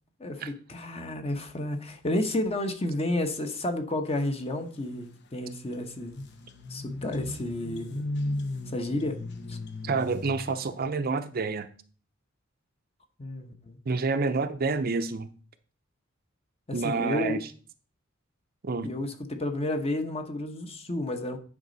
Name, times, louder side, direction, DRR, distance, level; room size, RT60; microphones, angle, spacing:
voice 1, 0.2-6.3 6.7-8.0 8.7-9.2 9.5-9.6 13.2-13.8 16.7-17.4 18.8-21.4, left 1 dB, 30° left, 1.0 m, -31 dB
sound 1, 5.7-5.8 6.1-10.8, left 2 dB, 60° left, 0.9 m, -36 dB
voice 2, 9.8-11.7 13.9-15.3 16.7-17.4 18.6-18.9, right 4 dB, 50° right, 0.6 m, -28 dB
9.7 x 5.1 x 4.0 m
head